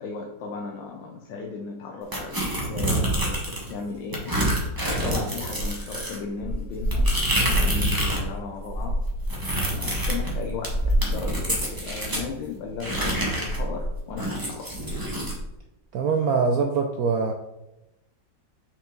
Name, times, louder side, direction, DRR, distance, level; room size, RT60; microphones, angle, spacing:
voice 1, 0.0-9.0 9.6-14.7, left 4 dB, 80° left, 2 dB, 1.4 m, -36 dB
sound 1, 2.1-3.7 4.1-8.3 8.6-12.3 12.8-15.4, right 1 dB, 15° right, 1.0 m, -26 dB
voice 2, 15.9-17.3, right 5 dB, 80° right, 4 dB, 0.8 m, -23 dB
6.4 x 4.7 x 3.8 m, 0.94 s
omnidirectional pair, 2.1 m